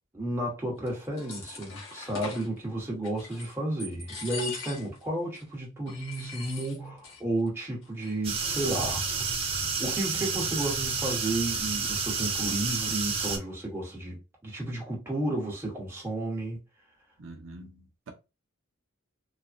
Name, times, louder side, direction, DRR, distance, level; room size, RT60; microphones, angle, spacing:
voice 1, 0.1-9.0 9.8-14.2 14.4-16.6, right 1 dB, 10° right, 1.0 m, -32 dB
sound 1, 0.9-2.5 3.0-3.5 3.8-5.0 5.3-5.4 5.9-7.2 7.5-7.6 7.8-8.3, left 4 dB, 75° left, 1.0 m, -41 dB
sound 2, 8.2-13.4, right 5 dB, 30° right, 0.5 m, -30 dB
voice 2, 17.2-18.1, right 2 dB, 75° right, 0.6 m, -45 dB
3.2 x 2.1 x 2.5 m
head